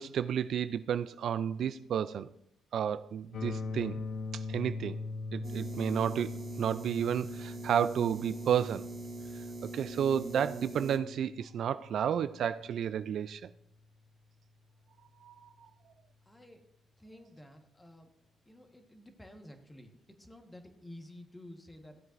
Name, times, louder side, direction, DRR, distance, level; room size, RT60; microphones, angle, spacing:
voice 1, 0.0-2.3 2.7-4.0 4.5-5.0 5.3-9.0 9.6-13.4 15.2-15.5, right 8 dB, 65° right, 13 dB, 0.3 m, -31 dB
sound 1, 3.3-13.3, left 3 dB, 55° left, 0.8 m, -42 dB
sound 2, 5.4-11.0, right 2 dB, 40° right, 1.0 m, -43 dB
voice 2, 16.3-16.6 17.0-18.1 18.4-22.0, left 1 dB, 10° left, 5 dB, 1.3 m, -52 dB
15.5 x 7.7 x 2.5 m, 0.80 s
cardioid pair, 90°, 0 cm